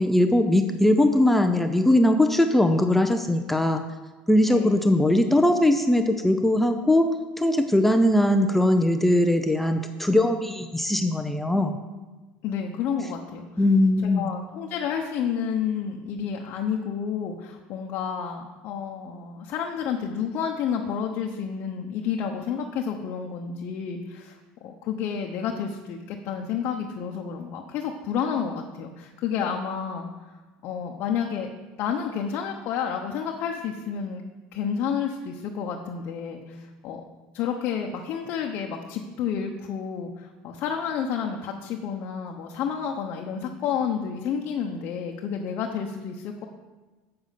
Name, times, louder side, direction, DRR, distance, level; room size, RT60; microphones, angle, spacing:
voice 1, 0.0-3.8 4.3-11.8 13.6-14.3, left 1 dB, 5° left, 6 dB, 0.6 m, -20 dB
voice 2, 4.4-4.8 12.4-13.6 14.0-24.4 24.6-30.1 30.6-31.5 31.8-34.2 34.5-37.0 37.3-46.4, left 7 dB, 55° left, 1 dB, 0.9 m, -30 dB
7.7 x 7.1 x 5.8 m, 1.2 s
supercardioid pair, 100°, 4 cm